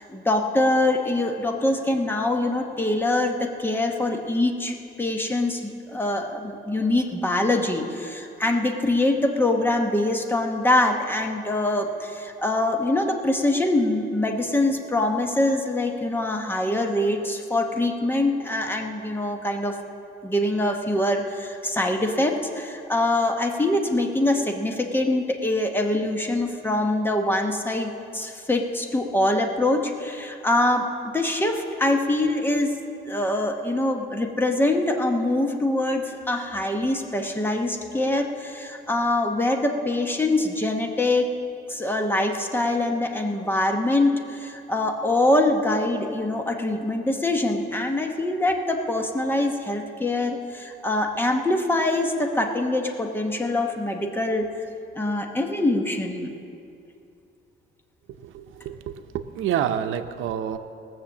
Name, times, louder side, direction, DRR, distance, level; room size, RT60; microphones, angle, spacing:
voice 1, 0.0-19.8 20.2-32.7 33.0-41.3 41.7-54.5 54.9-56.3, left 1 dB, 10° left, 3 dB, 1.0 m, -24 dB
voice 2, 58.2-60.6, right 9 dB, 90° right, 9 dB, 0.7 m, -28 dB
18.5 x 6.8 x 7.2 m, 2.6 s
cardioid pair, 160°, 20 cm